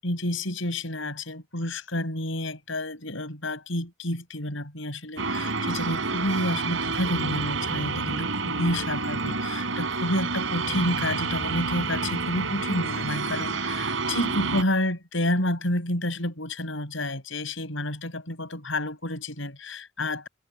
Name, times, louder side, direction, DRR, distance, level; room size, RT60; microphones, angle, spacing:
voice 1, 0.0-20.3, left 1 dB, 75° left, 7.8 m, -30 dB
sound 1, 5.2-14.6, right 4 dB, 80° right, 4.5 m, -29 dB
head